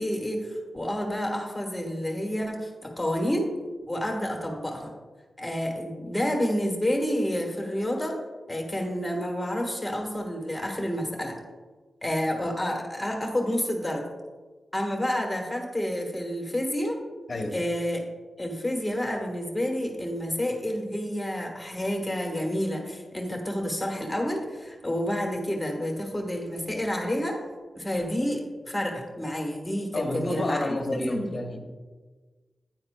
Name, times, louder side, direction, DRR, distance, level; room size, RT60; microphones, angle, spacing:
voice 1, 0.0-3.5 3.9-4.9 5.4-8.1 8.5-11.4 12.0-14.0 14.7-17.0 17.5-18.0 18.4-27.4 27.7-30.7 31.0-31.3, equal, 5° left, 0 dB, 1.3 m, -29 dB
voice 2, 29.9-31.6, left 2 dB, 35° left, 3 dB, 0.9 m, -30 dB
9.5 x 9.1 x 2.3 m, 1.4 s
wide cardioid pair, 170°, 0 cm